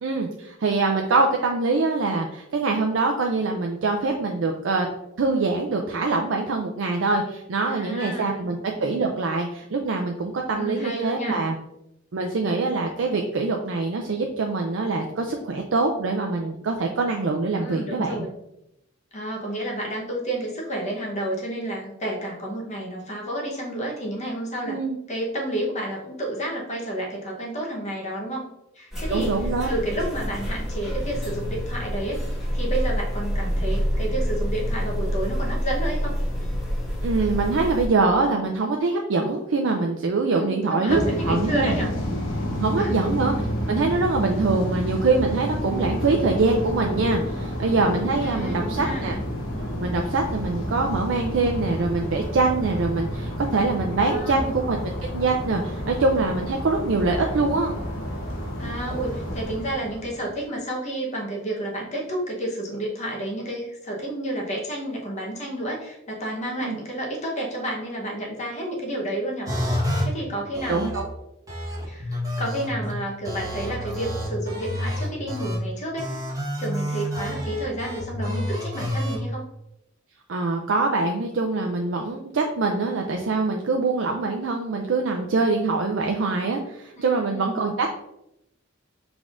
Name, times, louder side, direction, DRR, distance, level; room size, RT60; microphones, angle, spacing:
voice 1, 0.0-4.9 5.2-11.6 12.1-18.3 24.7-25.0 29.1-29.7 37.0-41.0 41.3-41.7 42.6-43.3 43.7-49.2 49.7-57.8 66.6-66.8 70.7-71.1 80.3-87.9, right 3 dB, 70° right, 2 dB, 0.4 m, -24 dB
voice 2, 7.6-8.4 10.5-11.4 17.5-18.3 19.1-24.8 25.1-28.5 28.7-29.4 29.7-32.2 32.5-36.2 40.3-41.9 42.8-43.0 48.2-49.1 54.0-54.5 58.6-69.5 70.0-70.9 71.9-76.2 76.6-79.4 87.0-87.7, right 1 dB, 35° left, -1 dB, 1.0 m, -30 dB
sound 1, 28.9-37.9, equal, ahead, 1.6 m, -27 dB
sound 2, 40.9-60.3, equal, 70° left, 0.8 m, -30 dB
sound 3, 69.5-70.0 70.5-71.0 71.5-72.9 73.2-75.5 76.0-79.2, left 1 dB, 20° right, 1.2 m, -29 dB
5.2 x 3.5 x 2.5 m, 0.84 s
head